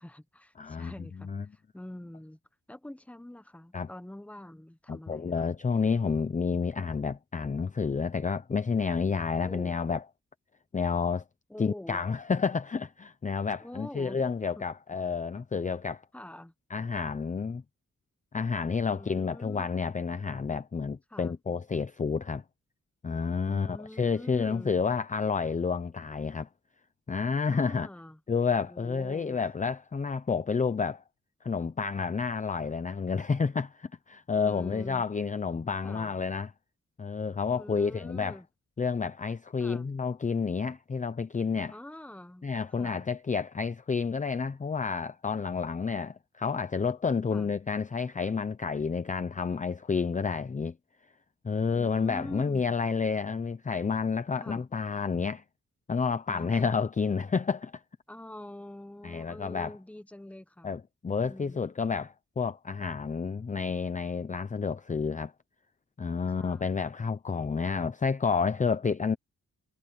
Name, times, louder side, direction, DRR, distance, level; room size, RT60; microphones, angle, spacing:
voice 1, 0.0-2.4 2.7-5.5 9.4-9.7 11.5-12.0 13.6-14.2 14.6-14.7 16.1-16.5 18.9-19.7 21.1-21.3 23.5-24.8 27.5-28.2 28.7-29.4 34.3-35.0 35.8-36.1 37.5-38.5 39.6-39.9 41.7-43.0 47.3-47.5 51.7-52.6 54.4-54.6 56.3-56.8 58.1-60.7 61.2-61.6 66.4-66.7, left 1 dB, 5° left, 1.0 m, -45 dB
voice 2, 0.6-0.9 1.2-1.4 3.7-3.9 4.9-10.0 10.7-11.2 11.6-16.0 16.7-17.6 18.3-22.4 23.0-26.5 27.1-27.9 28.3-31.0 31.4-36.5 37.0-38.4 38.8-41.7 42.4-50.7 51.4-55.4 55.9-57.8 59.0-59.7 60.6-65.3 66.0-69.2, left 5 dB, 25° left, 0.6 m, -30 dB
wide cardioid pair, 170°, 30 cm